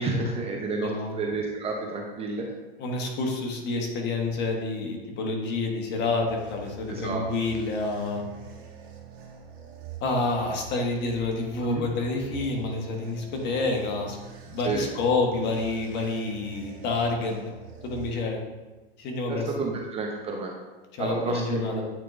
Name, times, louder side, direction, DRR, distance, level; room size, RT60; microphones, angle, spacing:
voice 1, 0.0-2.4 6.9-7.2 11.6-11.8 14.6-14.9 17.2-17.4 19.3-20.5 21.0-21.8, right 3 dB, 20° right, 0 dB, 0.7 m, -30 dB
voice 2, 0.8-1.1 2.8-8.2 10.0-14.2 14.5-17.5 17.8-18.4 19.0-19.5 20.9-21.8, left 3 dB, 35° left, 1 dB, 1.2 m, -28 dB
sound 1, 5.8-18.7, right 7 dB, 65° right, 1.8 m, -45 dB
8.8 x 4.5 x 2.5 m, 1.2 s
hypercardioid pair, 130°, 29 cm